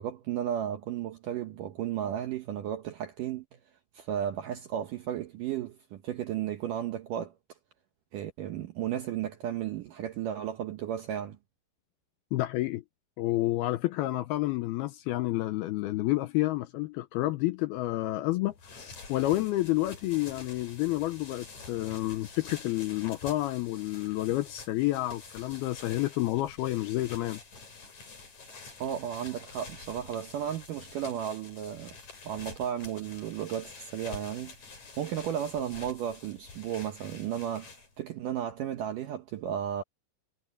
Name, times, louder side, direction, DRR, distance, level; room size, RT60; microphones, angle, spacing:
voice 1, 0.0-3.5 3.9-7.3 8.1-11.4 28.8-32.0 32.3-34.5 35.0-39.8, right 10 dB, 75° right, 2.0 m, -34 dB
voice 2, 12.3-12.8 13.2-27.4, left 17 dB, 85° left, 2.3 m, -29 dB
sound 1, 18.4-38.0, left 4 dB, 40° left, 6.4 m, -48 dB
omnidirectional pair, 5.0 m